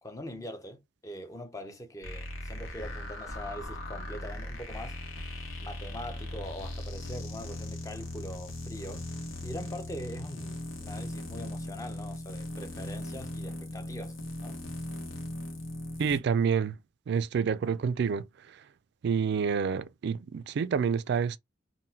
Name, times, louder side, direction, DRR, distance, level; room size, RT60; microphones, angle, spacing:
voice 1, 0.0-5.0 5.6-9.0 9.4-14.6, equal, 15° left, 0.5 m, -43 dB
sound 1, 2.0-16.2, left 1 dB, 85° left, 0.9 m, -39 dB
voice 2, 16.0-16.8 17.1-18.3 19.0-21.4, right 6 dB, 55° right, 0.3 m, -28 dB
3.8 x 2.1 x 2.7 m
head